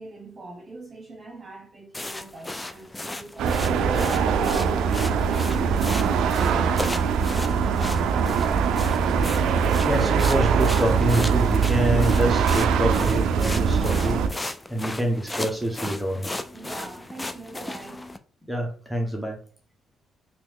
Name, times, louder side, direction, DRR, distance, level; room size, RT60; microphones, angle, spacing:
voice 1, 0.0-4.8 5.3-8.9 16.5-18.1, right 2 dB, 35° right, 1.2 m, -42 dB
sound 1, 1.9-18.2, left 2 dB, 15° left, 0.4 m, -36 dB
sound 2, 3.4-14.3, right 6 dB, 85° right, 0.4 m, -22 dB
voice 2, 9.2-14.4 14.7-16.3 18.5-19.4, equal, 5° right, 1.1 m, -27 dB
3.0 x 2.9 x 3.6 m
cardioid pair, 90°, 0 cm